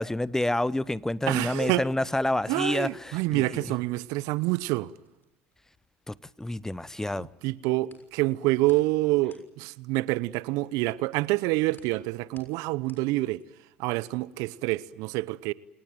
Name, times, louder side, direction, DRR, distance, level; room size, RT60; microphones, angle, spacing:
voice 1, 0.0-3.6 6.1-7.3, left 1 dB, 10° left, 0.8 m, -28 dB
voice 2, 1.3-1.8 2.5-4.9 7.1-13.4 13.8-15.5, right 19 dB, 65° right, 0.8 m, -27 dB
sound 1, 2.9-6.9 7.2-13.8, left 4 dB, 35° left, 6.4 m, -61 dB
28.5 x 19.0 x 9.2 m
hypercardioid pair, 65°, 6 cm